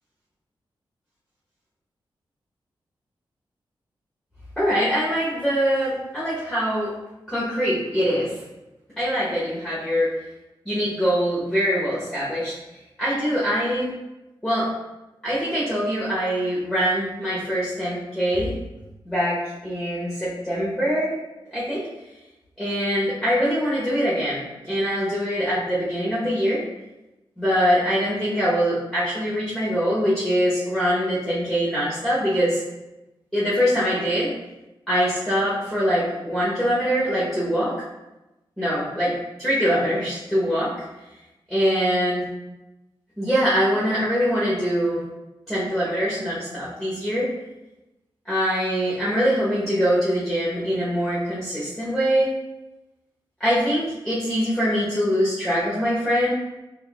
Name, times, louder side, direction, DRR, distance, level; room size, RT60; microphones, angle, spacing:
voice 1, 4.6-6.9 7.3-8.4 9.0-10.1 10.6-13.9 14.4-14.7 15.2-18.5 19.0-21.1 21.5-21.8 22.6-26.6 27.4-32.6 33.3-34.3 34.9-37.7 38.6-39.1 39.4-40.7 41.5-42.3 43.2-45.0 45.5-47.3 48.2-52.3 53.4-56.3, equal, ahead, -9 dB, 1.0 m, -23 dB
4.4 x 2.7 x 2.4 m, 1.0 s
wide cardioid pair, 90°, 9 cm